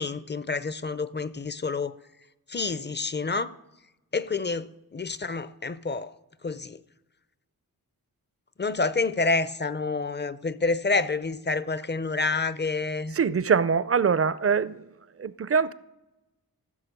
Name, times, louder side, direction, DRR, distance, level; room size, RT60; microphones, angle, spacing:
voice 1, 0.0-2.0 2.5-3.5 4.1-6.1 6.4-6.8 8.6-13.2, left 3 dB, 30° left, 0.5 m, -28 dB
voice 2, 13.1-14.9 15.2-15.7, right 6 dB, 40° right, 0.4 m, -23 dB
14.5 x 6.5 x 5.3 m
wide cardioid pair, 65°, 37 cm